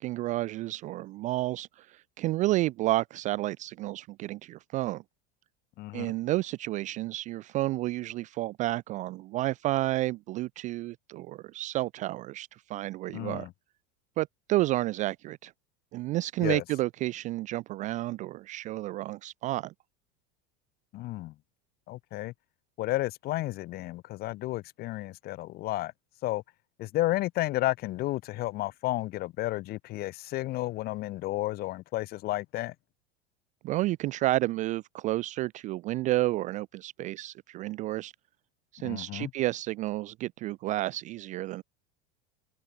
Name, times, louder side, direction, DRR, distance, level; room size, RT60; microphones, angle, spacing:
voice 1, 0.0-5.0 5.9-13.5 14.2-15.5 15.9-19.7 33.6-38.1 38.7-41.6, right 17 dB, 25° right, 0.4 m, -31 dB
voice 2, 5.8-6.1 13.1-13.5 16.4-16.6 20.9-21.3 21.9-22.3 22.8-25.9 26.2-26.4 26.8-32.7 38.8-39.3, left 17 dB, 30° left, 0.7 m, -32 dB
supercardioid pair, 170°, 32 cm